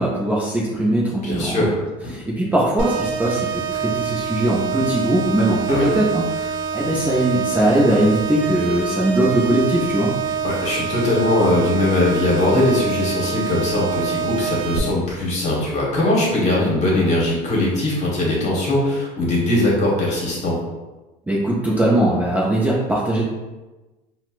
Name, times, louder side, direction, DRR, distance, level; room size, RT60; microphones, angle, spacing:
voice 1, 0.0-1.7 2.1-10.1 21.3-23.2, right 1 dB, 10° right, -6 dB, 0.5 m, -20 dB
voice 2, 1.2-1.7 2.0-2.1 5.7-5.9 10.4-20.6, left 1 dB, 35° left, -4 dB, 1.2 m, -20 dB
sound 1, 2.8-14.8, right 6 dB, 80° right, 0.4 m, -26 dB
4.1 x 2.1 x 2.4 m, 1.1 s
supercardioid pair, 115°, 21 cm